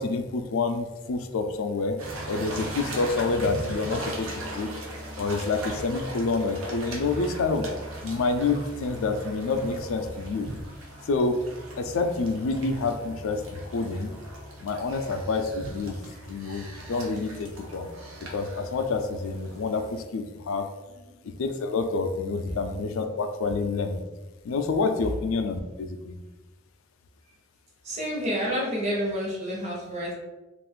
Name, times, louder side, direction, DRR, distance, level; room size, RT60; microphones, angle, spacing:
voice 1, 0.0-2.0 2.3-4.3 4.5-4.7 5.2-7.6 8.0-10.5 11.1-11.4 11.8-14.1 14.6-16.0 16.3-17.9 18.2-20.7 21.2-24.0 24.4-26.2, left 3 dB, 75° left, 7 dB, 0.4 m, -28 dB
sound 1, 2.0-20.0, right 1 dB, 85° right, 0.7 m, -39 dB
voice 2, 27.8-30.1, equal, 30° right, -5 dB, 0.9 m, -29 dB
2.4 x 2.4 x 3.5 m, 1.1 s
head